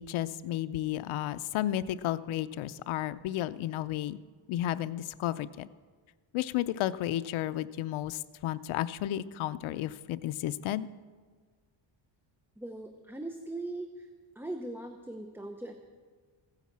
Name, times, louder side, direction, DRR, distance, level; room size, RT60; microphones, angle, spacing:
voice 1, 0.0-4.2 4.5-5.7 6.3-10.9, left 13 dB, 90° left, 14 dB, 0.7 m, -32 dB
voice 2, 12.6-14.1 14.3-15.7, right 2 dB, 5° right, 5 dB, 0.7 m, -40 dB
15.0 x 9.9 x 7.4 m, 1.5 s
cardioid pair, 135°, 47 cm